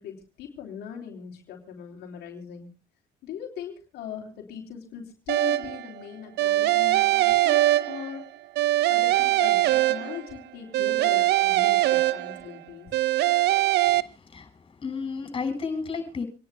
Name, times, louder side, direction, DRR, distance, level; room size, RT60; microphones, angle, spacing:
voice 1, 0.0-2.7 3.2-8.2 8.9-12.9, left 8 dB, 75° left, 1 dB, 3.4 m, -40 dB
sound 1, 5.3-5.9 6.4-8.2 8.6-10.4 10.7-12.5 12.9-14.0, right 16 dB, 75° right, 0.9 m, -22 dB
voice 2, 13.9-16.2, left 5 dB, 30° left, 6 dB, 7.3 m, -33 dB
27.5 x 10.5 x 2.2 m, 0.34 s
cardioid pair, 110°, 17 cm